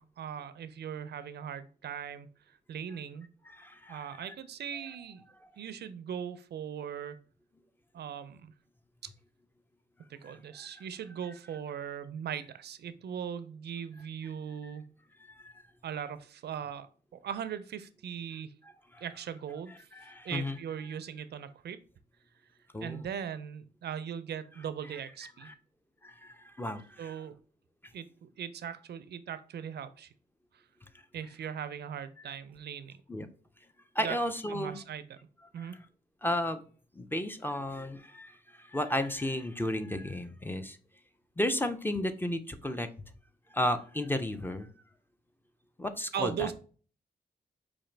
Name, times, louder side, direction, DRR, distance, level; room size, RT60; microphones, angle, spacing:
voice 1, 0.0-2.3 2.7-3.3 3.9-5.2 5.6-7.2 7.9-8.5 10.1-15.0 15.8-16.9 17.2-18.6 19.0-19.9 20.2-21.8 22.8-25.5 27.0-27.3 27.9-30.1 31.1-33.0 34.0-34.2 34.5-35.2 35.5-35.8 46.1-46.5, right 8 dB, 65° right, 12 dB, 0.4 m, -39 dB
voice 2, 3.5-4.1 10.2-10.3 14.6-14.7 15.3-15.5 18.9-19.0 19.9-20.6 22.7-23.0 25.2-25.6 26.0-27.2 32.2-32.3 33.1-33.3 34.0-34.8 35.6-35.7 36.2-36.6 37.0-40.8 41.4-42.9 43.5-44.7 45.8-46.5, left 1 dB, 10° left, 9 dB, 0.4 m, -33 dB
4.8 x 2.5 x 3.2 m, 0.40 s
cardioid pair, 100°, 18 cm